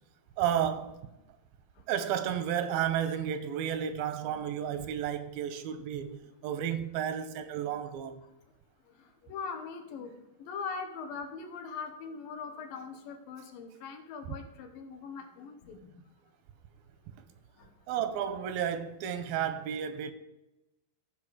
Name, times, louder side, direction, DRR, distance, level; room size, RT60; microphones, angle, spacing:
voice 1, 0.4-1.0 1.9-8.2 14.3-14.4 17.9-20.1, right 9 dB, 85° right, 2.4 m, -32 dB
voice 2, 8.9-10.1 10.4-15.9 17.6-17.7, left 5 dB, 75° left, 2.6 m, -41 dB
14.5 x 5.6 x 4.8 m
omnidirectional pair, 4.2 m